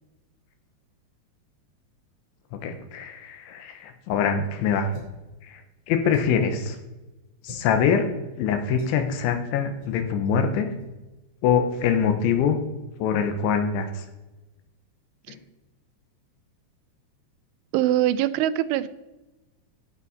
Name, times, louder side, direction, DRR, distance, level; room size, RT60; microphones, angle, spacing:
voice 1, 2.5-4.9 5.4-5.6 5.9-6.8 7.4-8.1 8.4-10.7 11.4-12.6 13.0-14.0 15.3-15.4, left 7 dB, 85° left, 6 dB, 3.4 m, -24 dB
sound 1, 4.9-5.3 6.1-6.5 7.4-7.7 8.8-9.0 9.8-10.0 10.2-10.4 10.8-10.9, left 2 dB, 40° left, 3.2 m, -43 dB
voice 2, 17.7-18.9, right 13 dB, 90° right, 14 dB, 3.1 m, -23 dB
16.5 x 5.7 x 4.0 m, 1.1 s
omnidirectional pair, 5.4 m